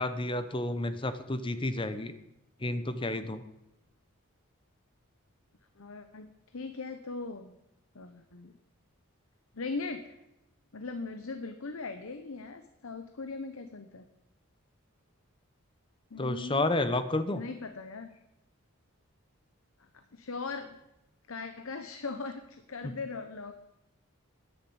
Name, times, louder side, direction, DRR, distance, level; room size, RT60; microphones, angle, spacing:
voice 1, 0.0-2.1 2.6-3.4 16.2-17.4, left 2 dB, 25° left, 11 dB, 0.9 m, -30 dB
voice 2, 5.8-7.6 7.9-8.5 9.5-10.2 10.7-14.1 16.1-16.7 17.3-18.1 19.9-20.8 21.3-23.5, left 4 dB, 70° left, 8 dB, 0.9 m, -39 dB
10.5 x 10.0 x 8.8 m, 0.89 s
head